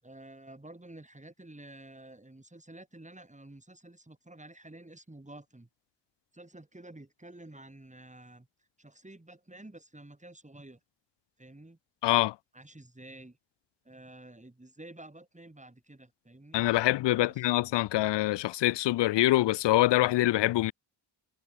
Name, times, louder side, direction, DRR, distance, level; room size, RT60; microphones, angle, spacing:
voice 1, 0.0-5.7 6.3-8.5 8.8-10.8 11.4-11.8 12.5-13.4 13.8-16.6 17.2-17.5, right 1 dB, 15° right, 7.8 m, -50 dB
voice 2, 12.0-12.3 16.5-20.7, left 16 dB, 65° left, 0.5 m, -25 dB
supercardioid pair, 50°, 47 cm